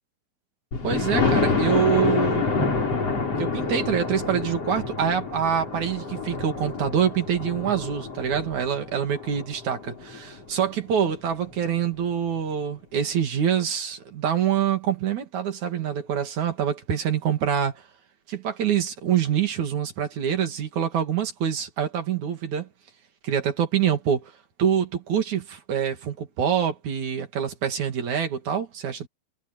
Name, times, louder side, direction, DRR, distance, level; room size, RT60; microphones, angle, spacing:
Thunder, 0.7-10.4 11.0-11.1 11.5-11.6 11.9-12.0, left 4 dB, 30° left, 5.9 m, -27 dB
voice 1, 0.8-2.5 3.4-17.8 18.3-22.7 23.2-24.3 24.6-29.1, right 8 dB, 45° right, 3.1 m, -25 dB
omnidirectional pair, 5.5 m